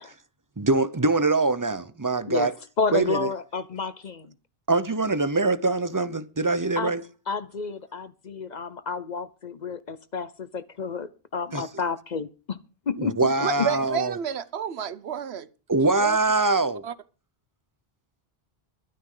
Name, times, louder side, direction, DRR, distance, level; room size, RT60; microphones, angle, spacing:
voice 1, 0.6-2.5 2.9-3.3 4.7-7.0 11.5-11.6 13.0-14.2 15.7-16.8, right 3 dB, 20° right, 0.8 m, -23 dB
voice 2, 2.8-4.3 6.8-6.9 7.3-12.6 12.9-13.3 13.6-13.7, left 5 dB, 45° left, 0.9 m, -30 dB
voice 3, 13.4-15.5 16.0-16.2 16.8-16.9, right 8 dB, 85° right, 1.1 m, -30 dB
22.5 x 9.6 x 3.9 m
omnidirectional pair, 1.0 m